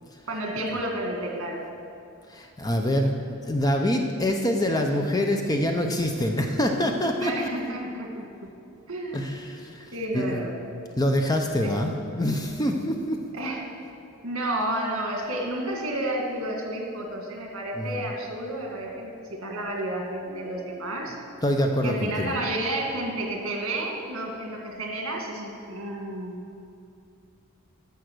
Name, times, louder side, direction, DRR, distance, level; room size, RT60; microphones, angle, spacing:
voice 1, 0.3-1.6 7.2-8.2 8.9-9.2 9.9-10.6 11.6-11.7 13.3-13.6 14.2-21.2 21.8-26.4, right 1 dB, 65° right, 0 dB, 2.0 m, -31 dB
voice 2, 2.3-3.1 3.4-7.5 9.1-10.4 11.0-13.2 17.8-18.1 21.4-22.3, left 1 dB, 15° left, 3 dB, 0.6 m, -25 dB
11.5 x 6.9 x 6.2 m, 2.5 s
head